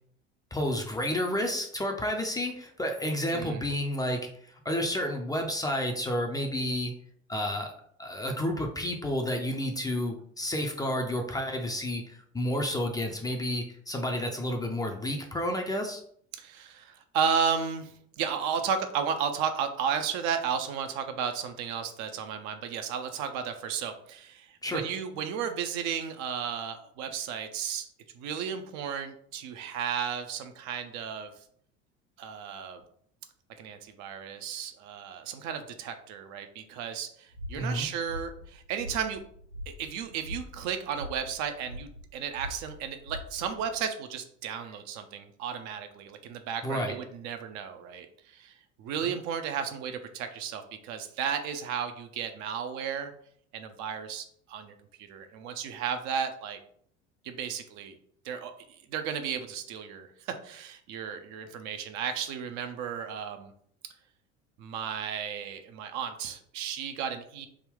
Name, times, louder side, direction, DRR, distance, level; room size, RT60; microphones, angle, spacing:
voice 1, 0.5-6.9 7.3-7.7 8.0-16.0 24.6-24.8 37.6-37.9 46.6-47.0, equal, 10° left, 2 dB, 0.5 m, -30 dB
voice 2, 3.3-3.6 16.3-27.9 28.2-31.3 32.2-32.8 33.6-39.2 39.7-48.1 48.3-53.1 53.5-54.7 55.0-56.6 57.2-58.0 58.2-63.5 64.6-67.5, right 7 dB, 50° right, 7 dB, 0.5 m, -34 dB
sound 1, 37.3-43.7, left 1 dB, 90° right, 1.1 m, -43 dB
3.5 x 2.2 x 3.5 m, 0.63 s
figure-of-eight pair, 65°, 37 cm